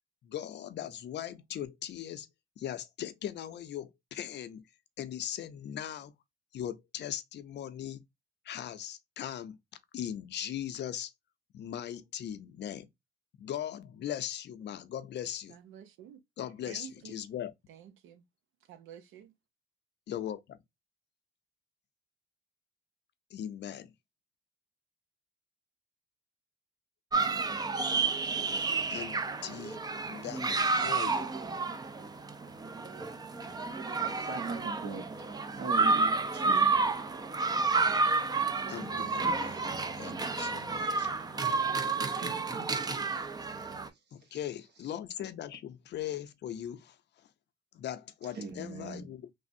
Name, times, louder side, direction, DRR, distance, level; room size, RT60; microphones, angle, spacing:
voice 1, 0.2-2.3 2.6-4.6 5.0-6.1 6.5-8.0 8.4-9.6 9.9-11.1 11.5-12.9 13.4-15.6 16.4-17.5 20.1-20.6 23.3-23.9 28.9-31.3 38.7-39.6 40.0-41.1 44.1-47.0 47.7-49.3, left 10 dB, 60° left, 0.5 m, -39 dB
voice 2, 15.5-16.2 16.7-17.2 17.7-18.2 18.7-19.3, right 9 dB, 85° right, 0.5 m, -50 dB
sound 1, 27.1-43.9, right 4 dB, 20° right, 0.4 m, -30 dB
voice 3, 34.0-35.1 35.5-36.8 42.0-42.8 44.2-44.3 48.3-49.1, right 4 dB, 60° right, 1.0 m, -40 dB
3.2 x 2.0 x 2.5 m
cardioid pair, 90°, 20 cm